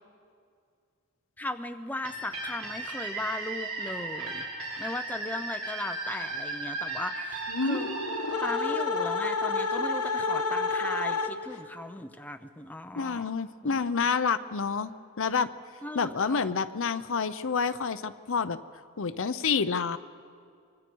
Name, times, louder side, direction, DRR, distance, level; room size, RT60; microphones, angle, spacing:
voice 1, 1.4-4.4 4.8-7.9 8.4-13.3 13.6-13.8 15.8-16.5, left 1 dB, 5° left, 7 dB, 0.6 m, -37 dB
sound 1, 2.0-9.6, right 3 dB, 70° right, 4.8 m, -36 dB
sound 2, 7.5-11.7, left 3 dB, 80° left, 1.2 m, -29 dB
voice 2, 13.0-14.9 15.2-15.5 15.9-18.6 19.0-20.0, left 5 dB, 60° left, 12 dB, 0.7 m, -28 dB
25.0 x 23.5 x 4.6 m, 2.2 s
head